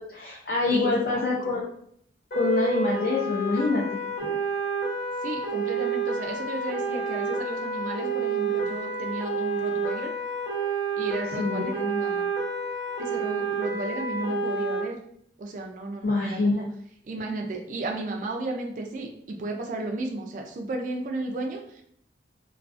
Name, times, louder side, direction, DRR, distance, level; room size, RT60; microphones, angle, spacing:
voice 1, 0.1-1.6 2.3-4.0 11.4-11.7 16.0-16.5, left 3 dB, 55° left, -4 dB, 0.5 m, -25 dB
voice 2, 0.7-1.6 5.2-10.1 11.0-12.3 13.0-15.0 15.4-16.6 17.0-21.8, right 2 dB, 45° right, 1 dB, 0.3 m, -33 dB
sound 1, 2.3-14.8, right 3 dB, 75° left, 0.9 m, -29 dB
2.3 x 2.3 x 2.4 m, 0.67 s
head